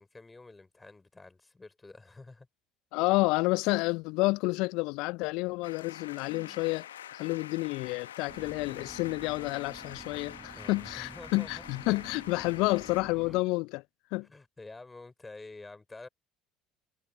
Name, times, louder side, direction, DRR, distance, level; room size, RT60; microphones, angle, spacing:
voice 1, 0.0-2.5 10.5-11.6 14.2-16.1, left 3 dB, 15° left, 5.0 m, -49 dB
voice 2, 2.9-13.8 14.1-14.3, left 24 dB, 65° left, 0.5 m, -30 dB
sound 1, 5.6-13.0, left 11 dB, 80° left, 1.2 m, -46 dB
Sigh, 6.1-6.7, equal, ahead, 4.6 m, -57 dB
sound 2, 8.3-13.4, right 4 dB, 20° right, 4.4 m, -50 dB
figure-of-eight pair, 60°, 0 cm